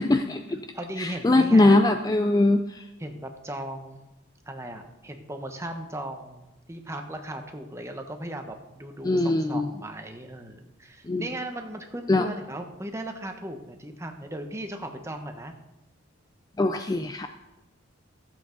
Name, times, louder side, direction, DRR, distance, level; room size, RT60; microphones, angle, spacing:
voice 1, 0.0-0.6 1.0-2.8 9.0-9.7 11.1-11.3 12.1-12.3 16.6-17.3, left 2 dB, 20° left, 7 dB, 0.3 m, -21 dB
voice 2, 0.7-1.8 3.0-4.0 4.5-15.5, right 1 dB, 15° right, 5 dB, 0.9 m, -37 dB
14.5 x 7.8 x 3.9 m, 1.0 s
head